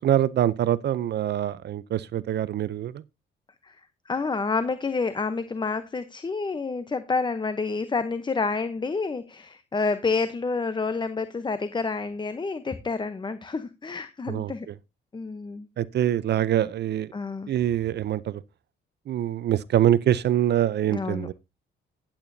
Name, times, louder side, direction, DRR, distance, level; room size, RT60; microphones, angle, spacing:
voice 1, 0.0-2.9 14.3-14.5 15.8-17.1 17.5-18.4 19.1-21.3, right 11 dB, 60° right, 0.5 m, -24 dB
voice 2, 4.1-14.7 15.1-15.7 17.1-17.5 20.9-21.3, left 4 dB, 25° left, 0.8 m, -29 dB
13.5 x 8.8 x 2.7 m
cardioid pair, 90°, 20 cm